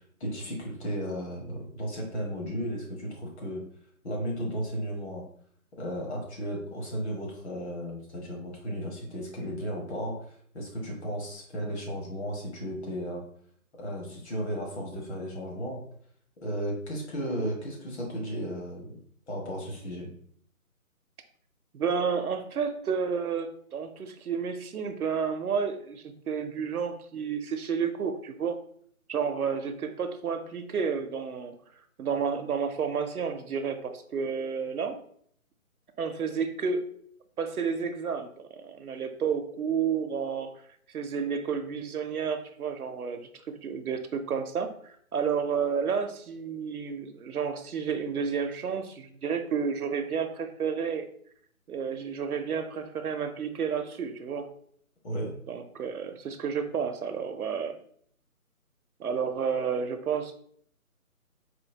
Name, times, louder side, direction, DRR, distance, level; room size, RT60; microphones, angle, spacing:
voice 1, 0.2-3.6 4.0-5.2 5.8-10.1 10.5-13.2 13.8-15.8 16.4-18.9 19.3-20.1 55.0-55.3, equal, 50° left, -1 dB, 1.3 m, -34 dB
voice 2, 21.7-28.6 29.1-31.6 32.0-35.0 36.0-36.8 37.4-40.5 40.9-43.2 43.5-51.0 51.7-54.5 55.5-57.8 59.0-60.3, right 6 dB, 80° right, 7 dB, 0.7 m, -31 dB
4.3 x 2.7 x 2.7 m, 0.62 s
figure-of-eight pair, 160°, 43 cm